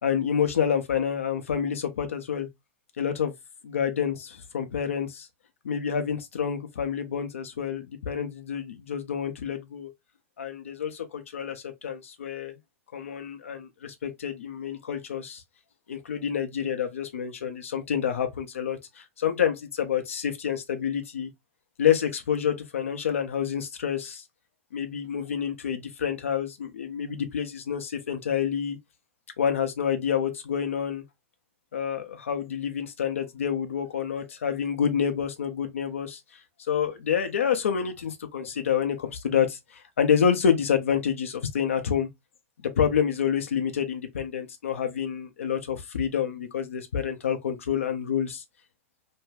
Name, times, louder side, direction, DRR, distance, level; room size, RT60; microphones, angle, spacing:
voice 1, 0.0-2.5 3.0-3.3 3.6-5.3 5.6-9.9 10.4-12.5 12.9-15.4 15.9-21.3 21.8-24.2 24.7-28.8 29.4-31.0 31.7-36.2 36.7-42.1 42.6-48.4, left 8 dB, 75° left, 0.6 m, -28 dB
2.6 x 2.2 x 3.2 m
hypercardioid pair, 100°, 7 cm